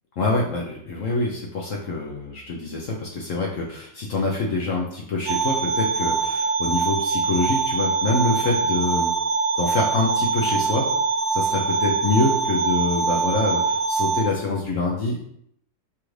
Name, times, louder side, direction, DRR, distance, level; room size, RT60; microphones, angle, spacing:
voice 1, 0.2-9.1 9.6-10.9 11.3-15.2, left 2 dB, 65° left, -2 dB, 0.8 m, -25 dB
sound 1, 5.3-14.2, right 4 dB, 85° right, 1.4 m, -23 dB
6.0 x 2.5 x 3.1 m, 0.70 s
omnidirectional pair, 2.0 m